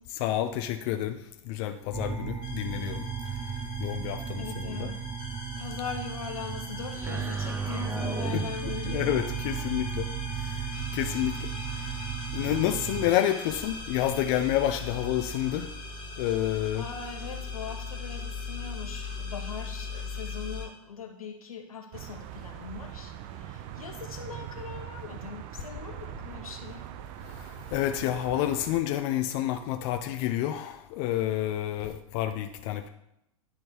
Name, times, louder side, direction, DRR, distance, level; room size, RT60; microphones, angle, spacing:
voice 1, 0.1-3.1 3.8-4.9 8.3-10.1 10.3-12.0 12.3-15.7 16.2-16.8 27.2-32.9, left 12 dB, 45° left, 8 dB, 0.6 m, -29 dB
sound 1, 1.9-13.1, right 7 dB, 10° right, 0.8 m, -34 dB
sound 2, 2.4-20.7, left 3 dB, 25° left, 2.0 m, -40 dB
voice 2, 4.3-5.0 5.6-9.8 16.7-26.9, left 6 dB, 85° left, 3 dB, 1.3 m, -41 dB
sound 3, 21.9-28.8, right 11 dB, 45° right, 0.6 m, -42 dB
9.9 x 3.7 x 4.6 m, 0.82 s
hypercardioid pair, 105°, 18 cm